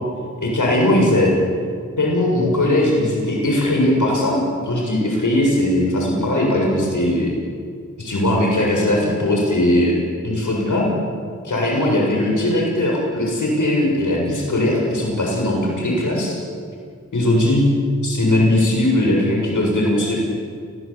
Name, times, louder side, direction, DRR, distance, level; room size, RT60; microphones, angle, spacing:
voice 1, 0.4-1.3 2.0-7.3 8.0-9.9 10.2-10.9 11.4-16.4 17.1-17.6 18.0-20.2, left 1 dB, 85° left, -1 dB, 7.2 m, -19 dB
29.0 x 19.5 x 8.7 m, 2.1 s
wide cardioid pair, 70°, 30 cm